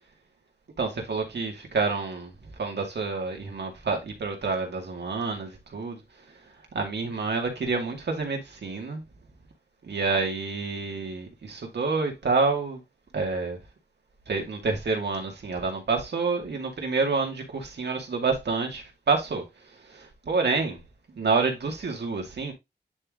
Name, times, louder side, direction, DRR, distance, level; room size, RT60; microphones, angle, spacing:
voice 1, 0.8-6.0 6.7-9.0 9.8-12.8 13.1-13.6 14.3-19.4 19.8-20.8 21.1-22.5, right 4 dB, 70° right, 2.4 m, -28 dB
9.7 x 3.4 x 3.8 m
wide cardioid pair, 75°, 18 cm